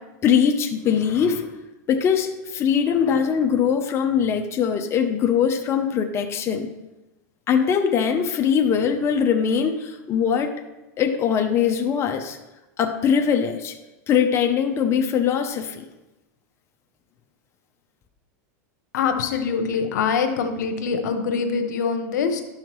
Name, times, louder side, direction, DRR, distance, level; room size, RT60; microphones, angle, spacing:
voice 1, 0.2-1.5 1.9-6.7 7.5-10.5 11.0-12.4 12.8-13.7 14.1-15.8, left 7 dB, 30° left, 4 dB, 0.7 m, -21 dB
voice 2, 18.9-22.4, left 5 dB, 85° left, 6 dB, 1.0 m, -24 dB
11.5 x 5.7 x 3.1 m, 1.0 s
supercardioid pair, 130°, 9 cm